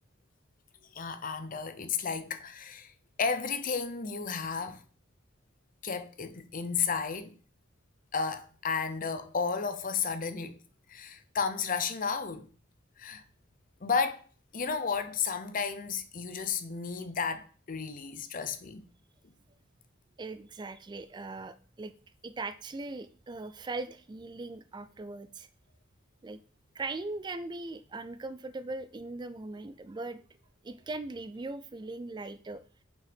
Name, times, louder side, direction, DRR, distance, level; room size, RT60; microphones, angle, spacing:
voice 1, 0.9-2.9 3.2-4.8 5.8-7.4 8.1-10.6 10.9-12.5 13.0-13.2 13.8-14.2 14.5-18.8, left 5 dB, 45° left, 0.7 m, -33 dB
voice 2, 20.2-21.9 22.2-25.5 26.2-26.4 26.7-30.2 30.6-32.6, right 3 dB, 20° right, 0.3 m, -39 dB
6.1 x 5.4 x 5.2 m
head